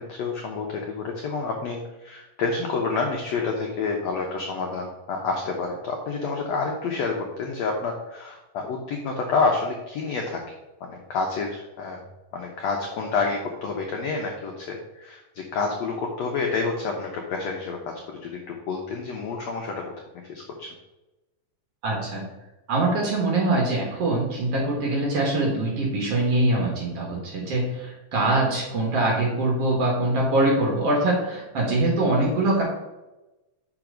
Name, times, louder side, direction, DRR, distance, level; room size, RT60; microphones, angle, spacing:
voice 1, 0.0-10.4 10.8-12.0 12.3-19.9 20.3-20.7, left 4 dB, 85° left, 1 dB, 1.4 m, -28 dB
voice 2, 21.8-22.3 22.7-32.6, right 2 dB, 50° right, -2 dB, 2.1 m, -23 dB
6.0 x 5.1 x 5.1 m, 1.0 s
omnidirectional pair, 4.1 m